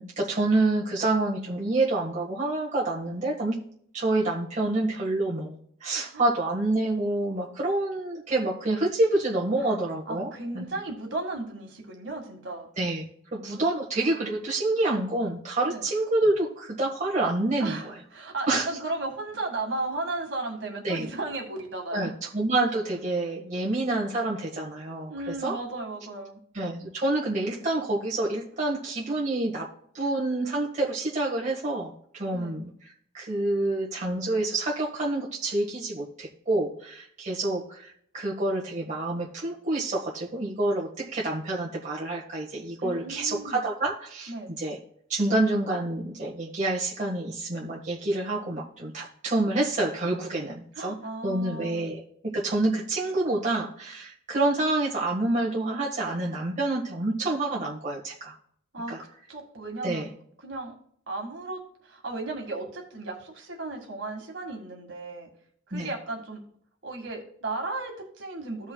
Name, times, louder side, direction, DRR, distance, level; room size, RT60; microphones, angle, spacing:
voice 1, 0.0-3.6 3.9-10.6 12.8-13.0 13.3-18.0 18.5-18.7 20.8-21.0 21.9-25.6 26.5-29.7 29.9-32.7 33.1-44.3 44.6-44.8 45.1-51.0 51.2-52.0 52.3-58.3 58.9-59.0 59.8-60.1 65.7-65.9, right 2 dB, 35° right, -4 dB, 1.6 m, -27 dB
voice 2, 10.1-12.7 15.7-15.8 17.6-22.2 25.1-26.4 32.3-32.6 42.8-43.6 44.3-44.5 50.8-51.8 58.7-60.1 60.4-60.7 61.1-65.3 65.7-66.4 66.8-68.7, right 2 dB, 60° right, 1 dB, 2.0 m, -35 dB
15.5 x 5.5 x 2.4 m, 0.63 s
head